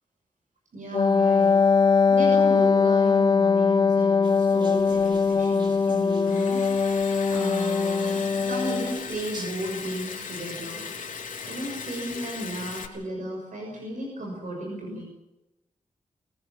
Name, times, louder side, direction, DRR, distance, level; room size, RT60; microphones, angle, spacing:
voice 1, 0.7-1.5 2.1-6.7 7.3-10.8 11.4-15.0, right 1 dB, 75° right, 0 dB, 6.4 m, -34 dB
Wind instrument woodwind instrument, 0.9-9.0, left 5 dB, 30° left, 0.9 m, -21 dB
sound 1, 4.2-9.5, right 2 dB, 35° right, 3.0 m, -47 dB
Liquid, 4.8-12.9, left 5 dB, 90° left, 3.2 m, -39 dB
24.0 x 19.5 x 7.4 m, 0.99 s
wide cardioid pair, 100°, 13 cm